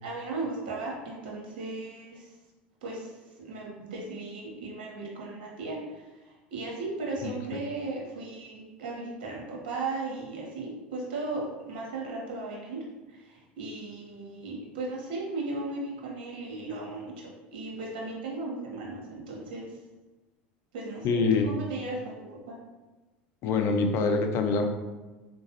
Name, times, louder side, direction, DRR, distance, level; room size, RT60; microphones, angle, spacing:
voice 1, 0.0-2.3 2.8-3.1 3.4-12.8 13.1-19.7 20.7-22.6, right 2 dB, 70° right, -3 dB, 1.3 m, -36 dB
voice 2, 21.0-21.5 23.4-24.7, left 4 dB, 55° left, 5 dB, 0.5 m, -25 dB
3.6 x 2.9 x 3.0 m, 1.2 s
hypercardioid pair, 85°, 5 cm